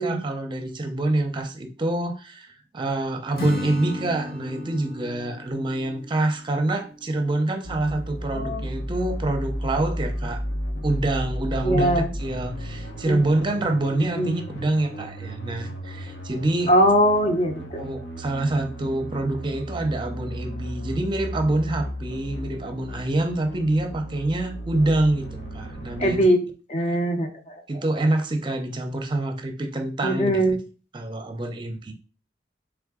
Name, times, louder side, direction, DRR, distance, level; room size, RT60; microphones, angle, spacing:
voice 1, 0.0-10.4 10.8-16.7 17.8-26.2 26.9-27.0 27.7-30.6 30.9-31.9, right 2 dB, 25° right, 6 dB, 0.6 m, -26 dB
Acoustic guitar / Strum, 3.4-7.3, left 1 dB, 55° left, 1.2 m, -35 dB
sound 1, 7.6-26.2, equal, 70° left, 0.9 m, -34 dB
voice 2, 8.3-8.7 11.6-12.1 13.1-13.2 14.1-14.4 16.7-17.8 26.0-26.4 26.7-27.6 30.0-30.6, equal, 40° left, 5 dB, 0.7 m, -21 dB
3.7 x 3.5 x 3.6 m, 0.35 s
head